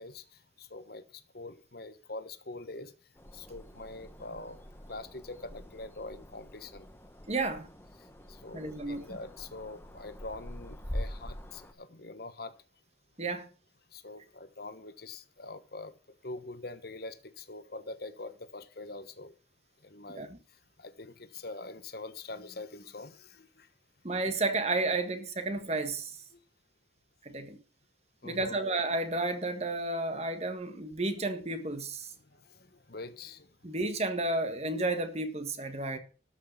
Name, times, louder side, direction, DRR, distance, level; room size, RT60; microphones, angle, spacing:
voice 1, 0.0-2.9 3.3-4.6 4.9-6.9 8.0-12.6 13.9-15.9 16.2-19.4 19.8-23.7 26.3-26.4 28.2-28.6 32.2-33.5, left 2 dB, 55° left, 1.3 m, -44 dB
sound 1, 3.2-11.7, equal, 10° left, 1.2 m, -44 dB
voice 2, 7.3-7.7 8.5-9.2 13.2-13.5 20.1-20.4 24.0-26.2 27.2-27.6 28.2-32.1 33.6-36.0, right 2 dB, 35° right, 1.6 m, -32 dB
13.0 x 6.6 x 7.1 m
head